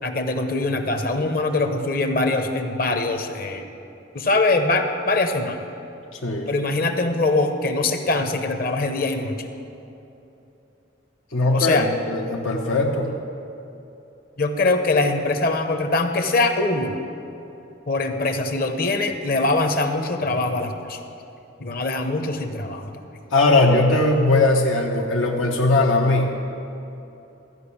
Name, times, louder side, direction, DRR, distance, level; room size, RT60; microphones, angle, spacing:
voice 1, 0.0-3.7 4.1-5.6 6.5-9.5 11.5-11.9 14.4-17.0 17.9-21.0 21.6-22.9, left 2 dB, 50° left, 6 dB, 0.8 m, -23 dB
voice 2, 11.3-13.2 23.3-26.3, left 2 dB, 90° left, -1 dB, 1.0 m, -19 dB
14.0 x 5.4 x 8.4 m, 2.9 s
head